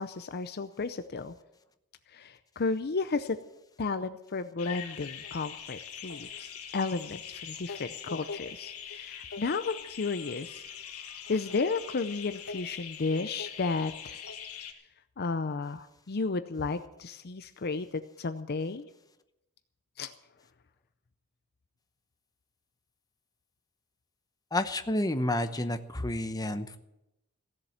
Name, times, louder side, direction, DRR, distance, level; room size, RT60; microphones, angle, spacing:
voice 1, 0.0-1.3 2.1-3.4 3.8-10.6 11.3-14.2 15.2-18.9 20.0-20.1, left 4 dB, 45° left, 11 dB, 0.6 m, -33 dB
sound 1, 4.6-14.7, left 7 dB, 75° left, 1.8 m, -42 dB
voice 2, 24.5-26.8, left 1 dB, 15° left, 8 dB, 0.8 m, -30 dB
16.0 x 7.6 x 9.4 m, 0.89 s
head